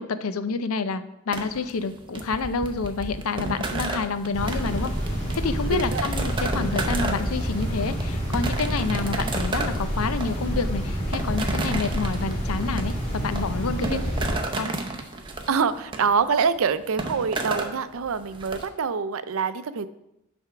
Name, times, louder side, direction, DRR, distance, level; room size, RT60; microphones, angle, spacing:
voice 1, 0.0-4.9 5.3-14.0 14.5-14.7, left 4 dB, 85° left, 11 dB, 0.5 m, -28 dB
sound 1, 1.3-18.6, right 2 dB, 20° right, 0.6 m, -33 dB
sound 2, 4.3-14.3, equal, 30° left, 3.1 m, -28 dB
voice 2, 5.6-6.1 13.8-14.4 15.5-19.9, right 5 dB, 80° right, 13 dB, 0.5 m, -26 dB
10.5 x 3.5 x 5.7 m, 0.87 s
head